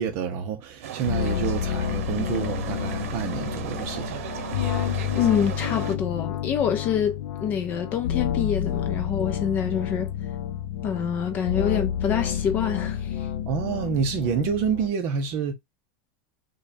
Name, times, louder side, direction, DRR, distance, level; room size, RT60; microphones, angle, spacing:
voice 1, 0.0-4.2 13.5-15.5, right 7 dB, 35° right, 0.7 m, -28 dB
sound 1, 0.8-6.0, right 9 dB, 85° right, 0.7 m, -36 dB
sound 2, 1.0-14.9, left 10 dB, 85° left, 0.5 m, -29 dB
voice 2, 4.9-10.1 10.8-13.3, left 8 dB, 25° left, 0.5 m, -26 dB
5.1 x 2.2 x 2.5 m
supercardioid pair, 175°, 7 cm